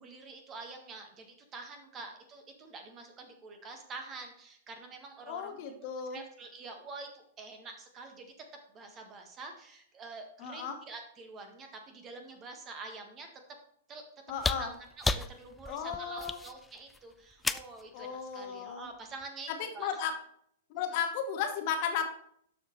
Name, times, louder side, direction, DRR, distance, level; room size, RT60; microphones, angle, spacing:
voice 1, 0.0-5.6 6.1-8.3 8.7-13.3 13.9-14.0 14.4-14.7 15.0-20.0, right 3 dB, 25° right, 5 dB, 1.5 m, -47 dB
voice 2, 5.2-6.2 10.4-10.8 14.3-14.7 15.7-16.4 17.9-18.9 19.5-20.1 20.7-22.1, left 7 dB, 45° left, 6 dB, 1.0 m, -35 dB
sound 1, 14.3-17.8 19.2-19.3, left 3 dB, 10° left, 0.3 m, -33 dB
12.5 x 4.9 x 3.1 m, 0.67 s
figure-of-eight pair, 105°, 0 cm